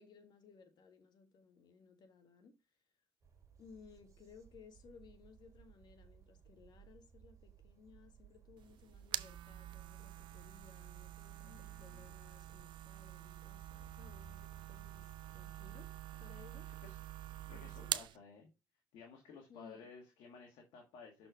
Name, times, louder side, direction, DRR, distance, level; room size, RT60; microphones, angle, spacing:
voice 1, 0.0-2.6 3.6-15.9 16.2-16.7 17.5-17.9 19.5-19.9, left 5 dB, 60° left, 1.5 m, -61 dB
sound 1, 3.2-17.8, right 6 dB, 40° right, 2.0 m, -61 dB
sound 2, 8.6-18.2, right 13 dB, 70° right, 0.4 m, -46 dB
voice 2, 11.4-12.0 16.1-16.2 16.8-17.0 17.4-18.5 18.9-21.3, left 5 dB, 85° left, 1.6 m, -55 dB
6.3 x 4.4 x 4.5 m
supercardioid pair, 75°, 8 cm